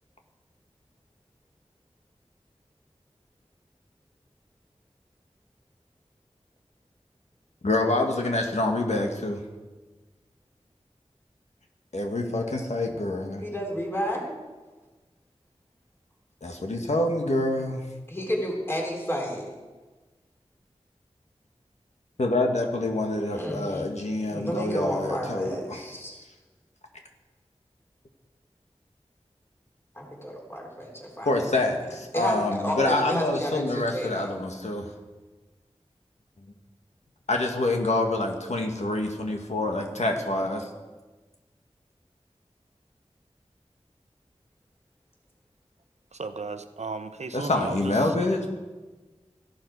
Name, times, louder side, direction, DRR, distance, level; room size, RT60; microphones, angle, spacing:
voice 1, 7.6-9.4 11.9-13.4 16.4-17.8 22.2-25.8 31.2-34.9 37.3-40.7 47.3-48.5, left 2 dB, 80° left, 3 dB, 1.7 m, -26 dB
voice 2, 13.4-14.3 18.1-19.5 23.3-23.8 24.3-26.3 29.9-31.5 31.7-34.4, equal, 20° left, -2 dB, 3.7 m, -31 dB
voice 3, 46.1-48.1, right 3 dB, 75° right, 9 dB, 0.9 m, -35 dB
15.5 x 11.5 x 4.7 m, 1.3 s
wide cardioid pair, 55°, 12 cm